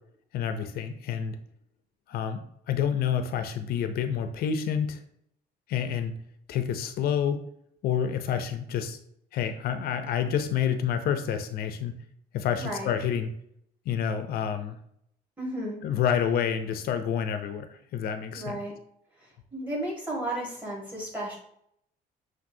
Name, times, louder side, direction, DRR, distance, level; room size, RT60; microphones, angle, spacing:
voice 1, 0.3-1.4 2.1-2.4 2.7-5.0 5.7-6.1 6.5-7.4 7.8-9.0 9.3-12.0 12.3-13.3 13.9-14.8 15.8-18.6, left 8 dB, 65° left, 8 dB, 0.5 m, -28 dB
voice 2, 12.6-12.9 15.4-15.8 18.3-18.7 19.5-21.4, right 1 dB, 10° right, -3 dB, 1.7 m, -33 dB
6.0 x 2.6 x 2.7 m, 0.70 s
cardioid pair, 110°, 17 cm